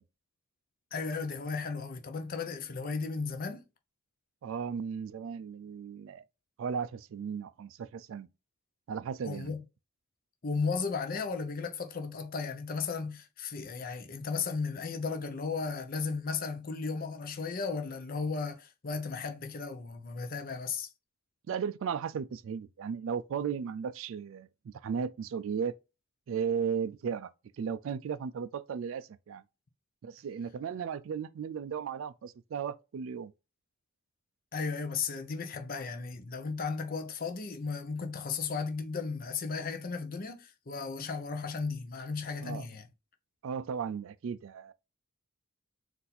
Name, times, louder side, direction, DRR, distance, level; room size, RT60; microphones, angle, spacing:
voice 1, 0.9-3.6 9.2-9.6 10.4-20.9 34.5-42.9, left 4 dB, 40° left, 0.6 m, -35 dB
voice 2, 4.4-6.2 6.6-8.3 8.9-9.5 21.5-25.8 26.3-27.3 27.6-29.4 30.0-33.3 42.4-42.6 43.4-44.7, right 7 dB, 65° right, 0.3 m, -35 dB
4.2 x 2.6 x 4.0 m
head